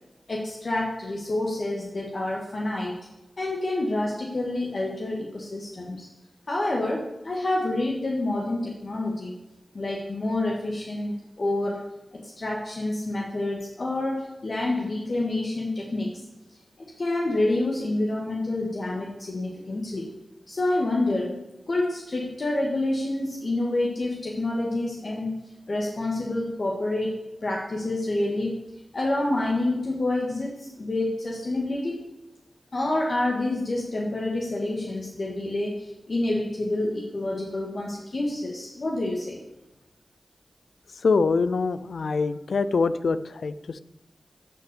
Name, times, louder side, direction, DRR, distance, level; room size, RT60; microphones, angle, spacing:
voice 1, 0.3-3.0 3.4-6.1 6.5-9.3 9.7-11.9 12.1-16.1 17.0-20.1 20.5-21.4 21.7-25.4 25.7-28.6 28.9-32.0 32.7-39.4, left 2 dB, 65° left, -2 dB, 1.8 m, -28 dB
voice 2, 40.9-43.8, left 4 dB, 85° left, 14 dB, 0.5 m, -24 dB
10.5 x 6.0 x 6.9 m, 0.97 s
cardioid pair, 45°, 0 cm